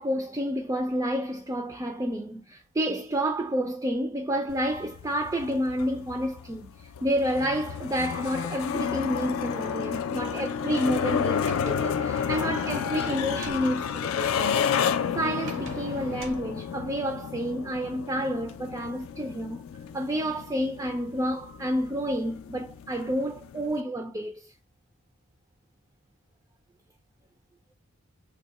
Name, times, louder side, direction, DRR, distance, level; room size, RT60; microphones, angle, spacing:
voice 1, 0.0-6.7 7.0-14.7 15.1-19.6 19.9-24.5, equal, 15° right, 0.3 m, -29 dB
sound 1, 4.5-23.8, left 7 dB, 75° left, 0.3 m, -31 dB
Sliding door, 11.4-13.7 15.4-16.5, right 3 dB, 60° right, 0.6 m, -44 dB
3.0 x 2.1 x 3.9 m
head